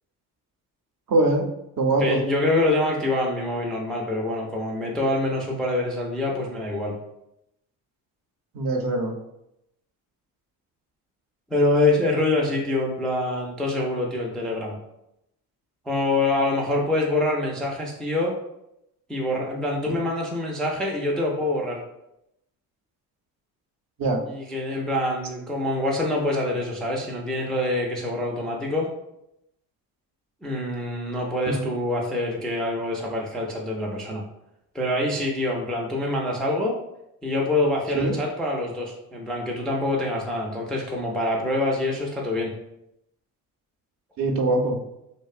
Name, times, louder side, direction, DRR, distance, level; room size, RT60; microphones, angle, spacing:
voice 1, 1.1-1.5 1.8-2.2 8.5-9.1 24.0-24.2 31.5-31.6 37.9-38.1 44.2-44.8, right 2 dB, 55° right, 3 dB, 0.6 m, -22 dB
voice 2, 2.0-6.9 11.5-14.7 15.9-18.3 19.1-21.8 24.3-28.9 30.4-34.2 34.7-36.8 37.2-42.5, left 2 dB, ahead, -2 dB, 0.3 m, -25 dB
2.6 x 2.1 x 2.4 m, 0.83 s
supercardioid pair, 70°, 41 cm